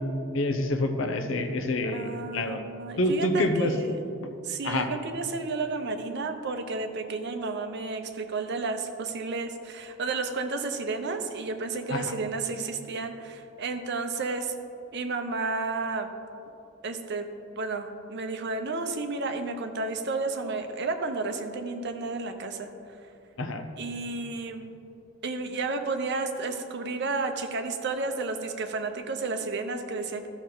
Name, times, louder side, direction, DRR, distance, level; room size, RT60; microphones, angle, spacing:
voice 1, 0.3-2.6 3.0-3.7 4.6-4.9 11.9-12.1 23.4-23.6, left 1 dB, 65° left, 7 dB, 0.7 m, -27 dB
voice 2, 1.9-4.0 4.4-14.5 14.9-16.1 16.8-17.3 17.6-22.7 23.8-24.7 25.2-30.3, right 3 dB, 55° right, 6 dB, 0.8 m, -32 dB
13.5 x 6.2 x 3.9 m, 2.7 s
head